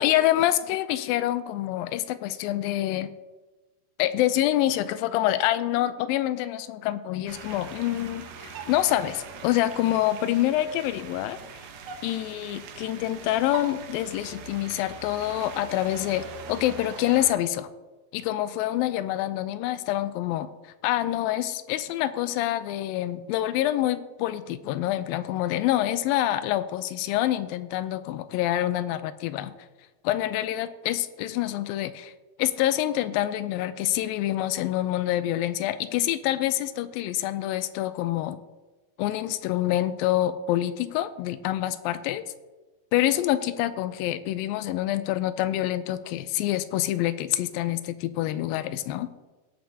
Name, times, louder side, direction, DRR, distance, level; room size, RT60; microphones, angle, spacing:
voice 1, 0.0-3.1 4.0-11.4 12.0-17.7 18.1-20.5 20.8-29.5 30.0-32.1 32.4-38.4 39.0-42.3 42.9-49.1, left 13 dB, 85° left, 13 dB, 2.3 m, -26 dB
sound 1, 7.3-17.3, right 6 dB, 75° right, 2.5 m, -42 dB
17.5 x 7.7 x 2.7 m, 1.2 s
omnidirectional pair, 4.2 m